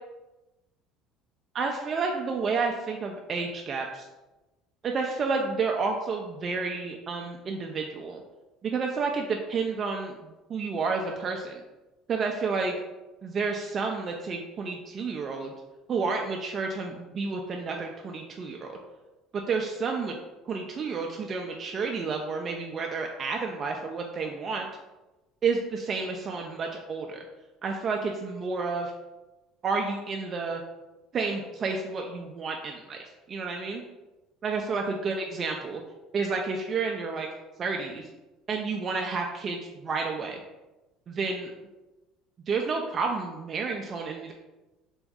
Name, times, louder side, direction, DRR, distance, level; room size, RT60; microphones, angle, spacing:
voice 1, 1.5-4.1 4.8-8.2 8.6-11.6 12.1-12.7 13.2-15.5 15.9-18.8 19.3-20.1 20.4-24.7 25.4-27.2 27.6-28.9 29.6-30.6 31.1-33.0 33.3-33.8 34.4-35.8 36.1-37.3 37.6-38.1 38.5-40.4 41.1-41.5 42.5-44.3, right 4 dB, 35° right, 2 dB, 0.4 m, -30 dB
3.5 x 3.0 x 3.6 m, 1.1 s
cardioid pair, 125°, 0 cm